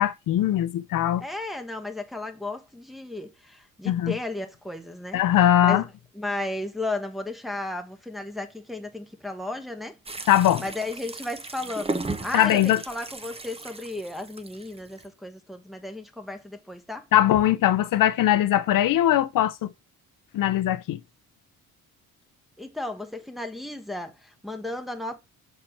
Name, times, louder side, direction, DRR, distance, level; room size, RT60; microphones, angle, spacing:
voice 1, 0.0-1.2 3.9-4.1 5.1-5.8 10.3-10.6 12.3-12.8 17.1-19.7 20.3-21.0, left 12 dB, 70° left, 0.7 m, -21 dB
voice 2, 1.2-5.2 5.6-5.8 6.1-10.0 10.6-17.1 22.6-25.2, left 2 dB, ahead, 1.2 m, -34 dB
sound 1, 10.1-15.1, right 2 dB, 15° right, 0.9 m, -36 dB
6.8 x 4.3 x 5.7 m
cardioid pair, 110°, 34 cm